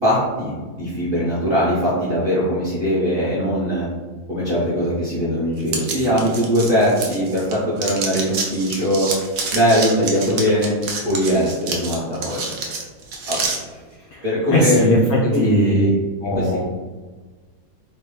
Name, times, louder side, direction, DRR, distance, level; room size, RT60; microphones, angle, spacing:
voice 1, 0.0-3.9 4.3-9.1 9.5-10.7 11.0-12.4 13.3-13.4 14.2-14.8 15.2-16.0 16.3-16.6, equal, 50° right, -9 dB, 0.7 m, -21 dB
sound 1, 5.7-7.5 7.8-13.6, right 4 dB, 90° right, 0.6 m, -28 dB
voice 2, 14.1-15.9 16.2-16.6, left 1 dB, 80° left, -2 dB, 0.8 m, -19 dB
3.9 x 2.1 x 3.5 m, 1.4 s
omnidirectional pair, 2.0 m